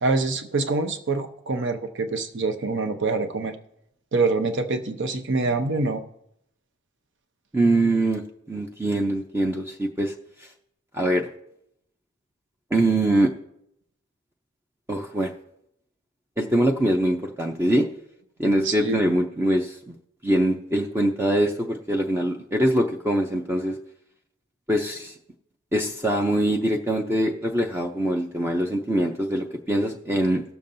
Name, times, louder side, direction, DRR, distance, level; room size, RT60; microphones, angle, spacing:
voice 1, 0.0-3.5 4.1-6.0 18.6-19.0, right 3 dB, 60° right, 8 dB, 0.8 m, -25 dB
voice 2, 7.5-8.2 8.5-10.1 10.9-11.3 12.7-13.3 14.9-15.3 16.4-17.9 18.4-19.9 20.2-23.8 24.7-25.1 25.7-30.4, right 1 dB, 10° right, 1 dB, 0.5 m, -23 dB
19.0 x 7.1 x 2.6 m, 0.78 s
head